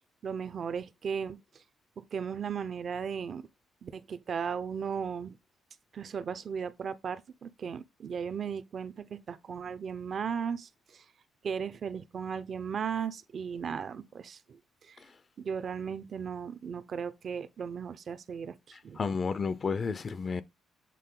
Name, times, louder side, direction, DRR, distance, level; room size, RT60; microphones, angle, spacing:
voice 1, 0.2-1.4 2.1-3.4 3.8-5.4 5.9-11.0 11.4-14.6 14.9-15.0 15.4-19.0, right 6 dB, 50° right, 0.7 m, -36 dB
voice 2, 19.0-20.4, left 5 dB, 40° left, 0.6 m, -31 dB
7.6 x 3.7 x 3.8 m
cardioid pair, 90°, 0 cm